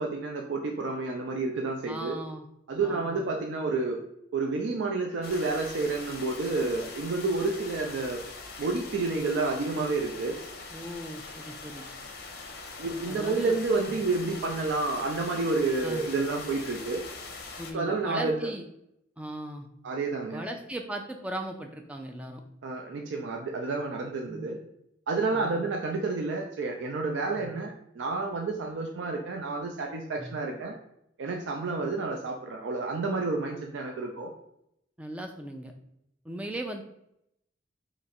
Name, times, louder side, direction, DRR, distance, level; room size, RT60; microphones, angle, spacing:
voice 1, 0.0-2.2 2.7-4.0 4.3-8.2 8.6-10.4 12.8-17.0 17.7-18.3 19.8-20.4 22.6-24.6 25.1-30.8 31.2-34.3, right 3 dB, 80° right, 2 dB, 0.4 m, -30 dB
voice 2, 1.8-2.5 2.8-3.4 10.7-11.9 13.1-13.6 13.9-14.0 15.8-16.1 17.6-18.6 19.2-19.7 20.3-22.4 24.3-24.5 25.3-25.8 27.4-27.5 30.2-30.3 35.0-35.7 36.2-36.8, right 1 dB, 5° right, 3 dB, 0.3 m, -38 dB
sound 1, 5.2-17.7, left 4 dB, 55° left, 0.6 m, -42 dB
3.0 x 2.4 x 4.2 m, 0.78 s
head